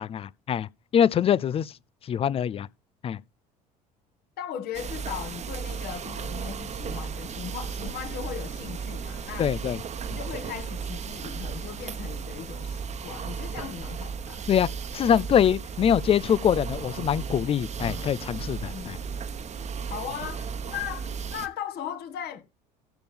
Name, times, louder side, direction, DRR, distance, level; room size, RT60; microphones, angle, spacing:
voice 1, 0.0-1.7 2.1-2.7 3.0-3.2 9.4-9.8 10.1-10.2 14.5-19.0, left 9 dB, 25° left, 0.5 m, -24 dB
voice 2, 4.4-9.5 10.1-14.5 18.7-18.9 19.9-22.4, left 9 dB, 50° left, 1.7 m, -38 dB
sound 1, 4.7-21.5, right 6 dB, 35° right, 1.2 m, -35 dB
Sliding door, 6.8-11.0 14.5-19.5, left 1 dB, 90° left, 5.4 m, -53 dB
15.0 x 6.8 x 3.5 m
figure-of-eight pair, 60°, 21 cm